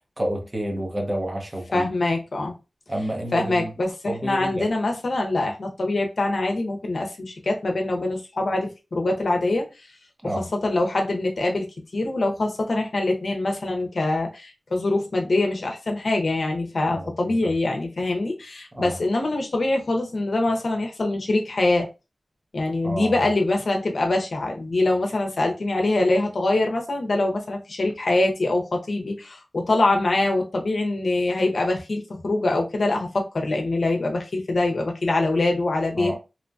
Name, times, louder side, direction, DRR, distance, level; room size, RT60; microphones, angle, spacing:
voice 1, 0.2-1.9 2.9-3.7 4.1-4.7 10.2-10.5 16.9-17.5 18.7-19.0 22.8-23.3 36.0-36.2, right 1 dB, 35° right, 0.9 m, -30 dB
voice 2, 1.7-2.5 3.3-9.7 10.6-11.7 11.9-21.9 22.5-36.2, left 2 dB, 75° left, 0.7 m, -24 dB
3.0 x 2.1 x 2.5 m
cardioid pair, 40°, 0 cm